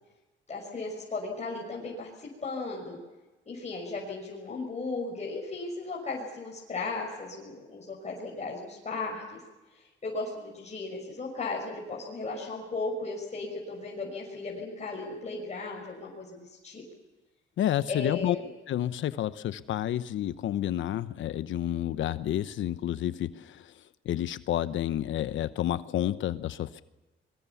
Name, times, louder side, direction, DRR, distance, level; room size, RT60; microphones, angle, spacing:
voice 1, 0.5-3.0 3.5-9.4 9.7-16.8 17.9-18.5, left 3 dB, 35° left, -2 dB, 6.3 m, -36 dB
voice 2, 17.6-18.4 18.7-26.8, left 12 dB, 75° left, 13 dB, 1.0 m, -30 dB
25.5 x 23.5 x 7.2 m, 1.1 s
cardioid pair, 90°, 20 cm